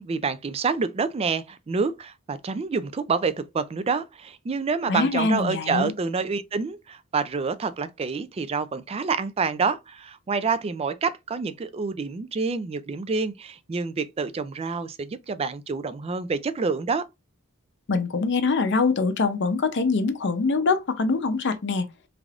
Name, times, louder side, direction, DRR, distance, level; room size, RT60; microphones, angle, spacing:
voice 1, 0.0-17.0, right 4 dB, 25° right, 0.3 m, -27 dB
voice 2, 4.9-5.9 17.9-21.8, left 4 dB, 50° left, 0.6 m, -24 dB
3.7 x 3.3 x 2.4 m
head